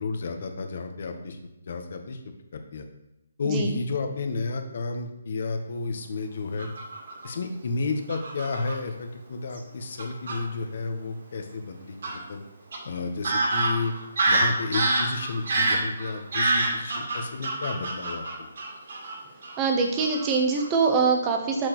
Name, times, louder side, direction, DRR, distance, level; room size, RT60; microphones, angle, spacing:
voice 1, 0.0-1.4 1.7-2.2 2.5-2.8 3.4-6.7 7.2-12.4 12.8-13.9 14.3-18.5, left 3 dB, 50° left, 6 dB, 0.9 m, -32 dB
Fowl / Bird vocalization bird call bird song, 6.6-7.3 8.1-8.7 9.6-9.7 10.0-10.4 12.0-12.2 12.7-12.8 13.2-19.2 19.4-19.7 20.0-20.3 20.6-20.8, right 2 dB, 60° right, 1.9 m, -26 dB
voice 2, 19.6-21.7, right 4 dB, 15° right, 2 dB, 0.7 m, -23 dB
6.7 x 6.1 x 3.0 m, 0.92 s
hypercardioid pair, 170°, 0 cm